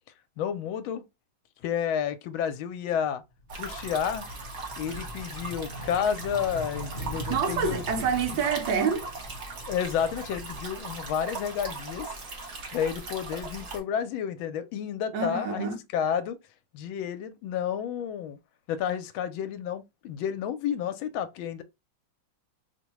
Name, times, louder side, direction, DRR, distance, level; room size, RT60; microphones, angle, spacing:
voice 1, 0.4-1.0 1.6-3.2 3.6-4.2 4.8-7.8 9.7-12.1 12.7-16.4 16.7-18.4 18.7-21.6, left 8 dB, 80° left, 1.4 m, -30 dB
sound 1, 3.4-11.5 11.9-13.0, left 1 dB, 45° left, 0.9 m, -42 dB
sound 2, 3.5-13.8, right 3 dB, 45° right, 1.0 m, -39 dB
voice 2, 7.3-9.1 15.1-15.8, right 6 dB, 75° right, 1.6 m, -27 dB
5.1 x 2.1 x 3.0 m
omnidirectional pair, 2.2 m